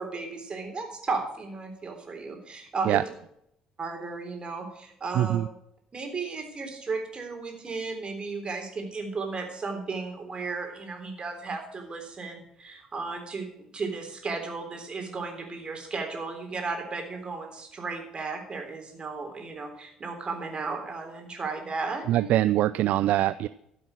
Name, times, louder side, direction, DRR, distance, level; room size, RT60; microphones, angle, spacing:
voice 1, 0.0-3.0 3.8-5.4 5.9-22.3, right 4 dB, 35° right, 4 dB, 3.6 m, -34 dB
voice 2, 5.1-5.5 22.1-23.5, right 13 dB, 60° right, 16 dB, 0.4 m, -23 dB
13.5 x 7.8 x 6.3 m, 0.75 s
figure-of-eight pair, 50°, 3 cm